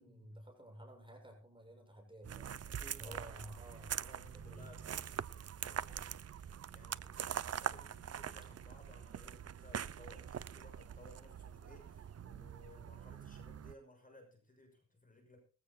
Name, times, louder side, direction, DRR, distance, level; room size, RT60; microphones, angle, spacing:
voice 1, 0.0-2.6 3.0-4.0 4.3-4.7, right 1 dB, 15° right, 2 dB, 6.9 m, -53 dB
sound 1, 2.2-13.7, right 8 dB, 55° right, 0.6 m, -44 dB
voice 2, 2.7-3.6 4.0-6.2 6.7-15.4, left 1 dB, 30° left, 4 dB, 6.4 m, -60 dB
21.5 x 16.0 x 2.4 m, 0.36 s
wide cardioid pair, 110°, 29 cm